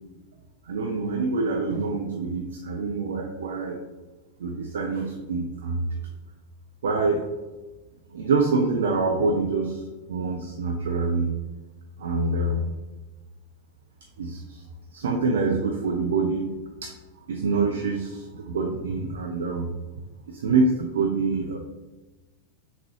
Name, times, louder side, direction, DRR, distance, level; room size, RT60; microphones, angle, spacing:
voice 1, 0.7-3.8 4.4-5.9 6.8-7.2 8.1-9.8 10.1-11.3 12.0-12.6 14.2-14.6 14.9-16.6 16.8-16.9 17.3-19.7 20.3-21.6, right 3 dB, 65° right, 2 dB, 0.3 m, -25 dB
3.6 x 3.0 x 2.8 m, 1.2 s
figure-of-eight pair, 90°, 0 cm